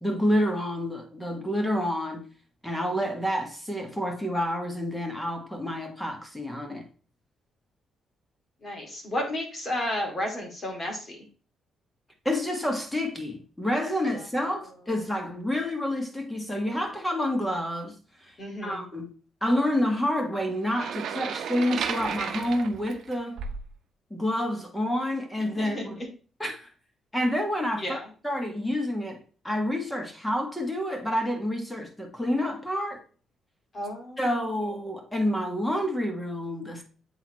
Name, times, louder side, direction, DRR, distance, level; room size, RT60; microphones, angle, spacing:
voice 1, 0.0-2.3 2.6-6.9 12.2-17.9 18.2-18.3 18.6-19.1 19.4-23.4 24.1-26.0 26.4-26.7 27.1-33.0 34.2-36.8, left 1 dB, 5° left, 1.7 m, -28 dB
voice 2, 8.6-11.2 18.4-18.9 25.6-26.1 27.8-28.1 33.7-34.2 34.6-34.7, left 1 dB, 30° left, 2.5 m, -32 dB
sound 1, 20.6-23.7, right 7 dB, 70° right, 0.7 m, -33 dB
7.9 x 3.9 x 3.1 m
cardioid pair, 90°, 0 cm